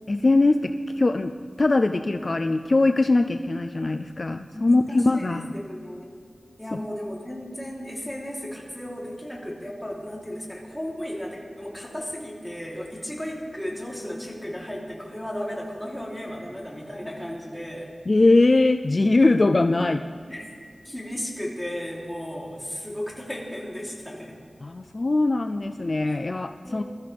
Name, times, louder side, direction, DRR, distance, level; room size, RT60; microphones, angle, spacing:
voice 1, 0.1-1.3 1.6-5.5 18.1-20.0 24.6-26.8, left 2 dB, 45° left, 8 dB, 0.4 m, -21 dB
voice 2, 4.5-6.1 6.6-17.9 20.3-20.5 20.8-24.4 26.0-26.2 26.6-26.8, equal, 5° left, -4 dB, 3.3 m, -35 dB
21.5 x 13.5 x 3.5 m, 2.2 s
wide cardioid pair, 80°, 0 cm